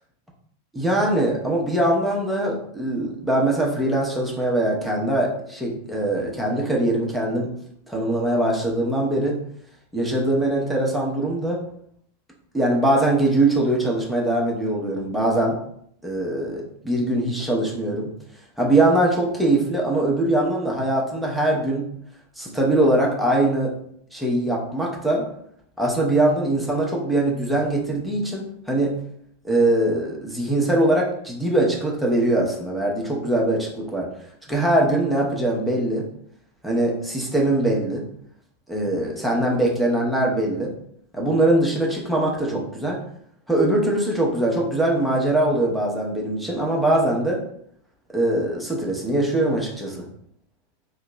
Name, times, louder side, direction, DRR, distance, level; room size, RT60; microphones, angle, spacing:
voice 1, 0.7-7.5 7.9-9.4 9.9-11.6 12.5-15.6 16.0-18.1 18.6-21.9 22.4-23.7 24.1-25.2 25.8-28.9 29.4-34.1 34.5-36.0 36.6-38.0 38.7-40.7 41.1-43.0 43.5-47.4 48.1-50.0, right 1 dB, ahead, -3 dB, 0.8 m, -22 dB
3.8 x 2.8 x 2.2 m, 0.69 s
figure-of-eight pair, 90°, 0 cm